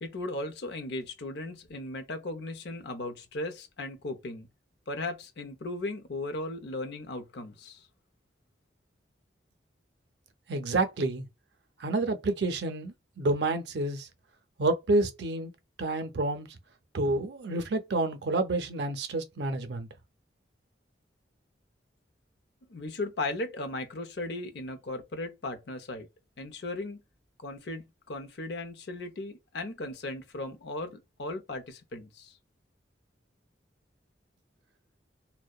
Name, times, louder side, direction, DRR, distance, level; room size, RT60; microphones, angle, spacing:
voice 1, 0.0-4.5 4.9-7.9 22.7-26.1 26.4-27.0 27.4-32.4, left 2 dB, 65° left, 0.6 m, -37 dB
voice 2, 10.5-11.3 11.8-14.1 14.6-15.5 15.8-16.6 16.9-19.9, right 2 dB, 65° right, 0.5 m, -29 dB
2.7 x 2.1 x 2.2 m
head